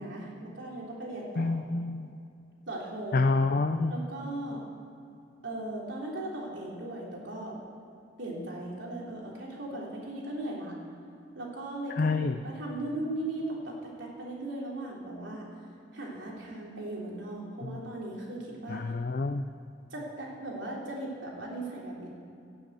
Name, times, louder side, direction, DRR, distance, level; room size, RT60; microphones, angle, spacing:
voice 1, 0.0-1.6 2.7-3.3 3.9-4.6 5.4-7.6 8.2-10.8 11.3-15.5 15.9-18.8 19.9-22.1, right 1 dB, 80° right, -3 dB, 3.4 m, -38 dB
voice 2, 1.4-2.1 3.1-3.9 12.0-12.4 18.7-19.4, left 3 dB, 50° left, 8 dB, 0.5 m, -27 dB
16.5 x 7.4 x 8.2 m, 2.5 s
head